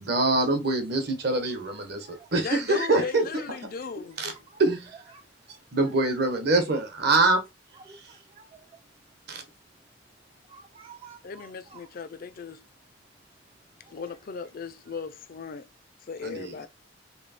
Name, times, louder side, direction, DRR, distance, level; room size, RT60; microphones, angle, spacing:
voice 1, 0.0-3.2 4.2-4.3 4.6-4.9 5.7-7.4 9.3-9.4 16.2-16.5, right 2 dB, 55° right, 1.0 m, -24 dB
voice 2, 2.4-4.2 11.2-12.6 13.9-15.7 16.1-16.7, left 5 dB, 50° left, 0.4 m, -37 dB
voice 3, 7.9-8.8 10.5-11.8 14.9-15.0, right 6 dB, 30° right, 0.4 m, -51 dB
3.2 x 2.7 x 4.1 m
head